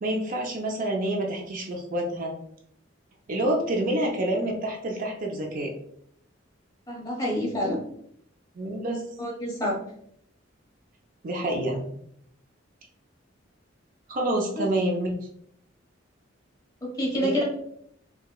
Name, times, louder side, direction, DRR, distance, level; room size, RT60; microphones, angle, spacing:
voice 1, 0.0-2.3 3.3-5.7 8.6-9.0 11.2-11.9 14.1-15.3 17.2-17.4, right 1 dB, 45° right, 1 dB, 0.5 m, -27 dB
voice 2, 6.9-7.8 9.2-9.8 14.6-14.7 16.8-17.4, equal, 20° left, -4 dB, 1.2 m, -27 dB
4.7 x 2.3 x 2.2 m, 0.69 s
head